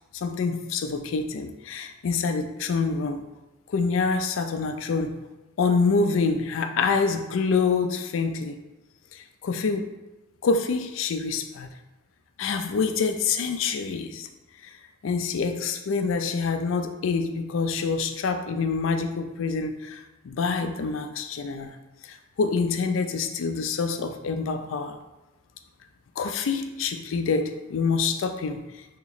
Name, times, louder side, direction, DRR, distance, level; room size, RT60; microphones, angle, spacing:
voice 1, 0.1-3.3 3.7-5.2 5.6-8.6 9.1-9.9 10.4-11.7 12.4-14.3 14.6-14.7 15.0-21.7 22.0-25.0 26.2-28.7, left 4 dB, 80° left, 6 dB, 0.4 m, -26 dB
3.0 x 2.9 x 3.9 m, 1.0 s
head